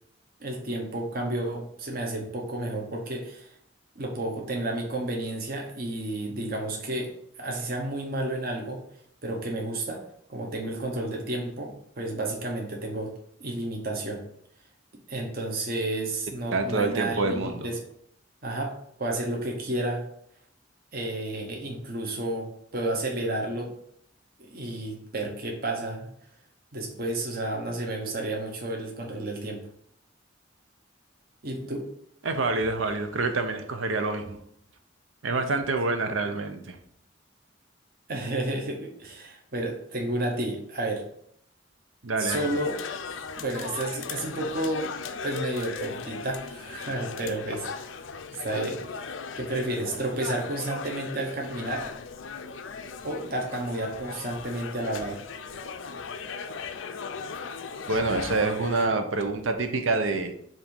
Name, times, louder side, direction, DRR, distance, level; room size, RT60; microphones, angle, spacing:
voice 1, 0.4-3.5 4.0-7.1 7.4-8.8 9.2-10.0 10.3-13.1 13.4-14.2 15.1-17.8 18.4-20.0 20.9-22.5 22.7-23.7 24.4-26.1 26.7-29.7 31.4-31.9 38.1-41.1 42.2-42.8 43.4-44.9 45.2-47.9 48.3-51.9 53.0-55.2, right 1 dB, 50° right, 1 dB, 1.0 m, -31 dB
voice 2, 16.5-17.7 32.2-34.4 35.2-36.8 42.0-42.4 57.9-60.3, right 3 dB, 90° right, 6 dB, 0.8 m, -27 dB
sound 1, 42.3-58.9, left 5 dB, 80° left, 0.5 m, -38 dB
7.4 x 2.7 x 5.3 m, 0.69 s
head